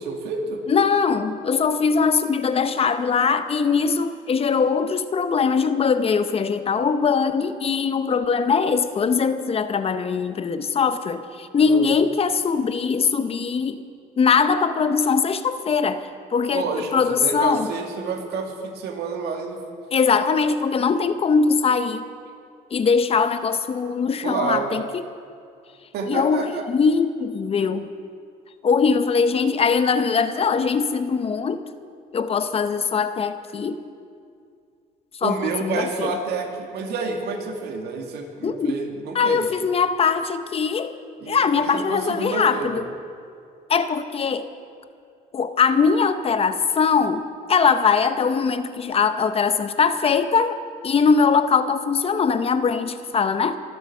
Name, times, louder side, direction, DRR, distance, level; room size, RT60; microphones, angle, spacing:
voice 1, 0.0-0.6 11.6-11.9 16.5-16.9 17.2-19.6 24.2-24.7 25.9-26.7 35.2-39.5 41.2-42.7, right 4 dB, 75° right, 2 dB, 2.3 m, -29 dB
voice 2, 0.7-13.8 14.2-17.7 19.9-22.0 22.7-24.8 26.1-27.9 28.6-31.6 32.1-33.8 35.1-36.1 38.4-38.8 39.1-41.0 41.3-42.9 43.7-44.5 45.3-53.6, left 5 dB, 35° left, 11 dB, 0.8 m, -21 dB
23.5 x 8.0 x 6.6 m, 2.3 s
cardioid pair, 110°, 17 cm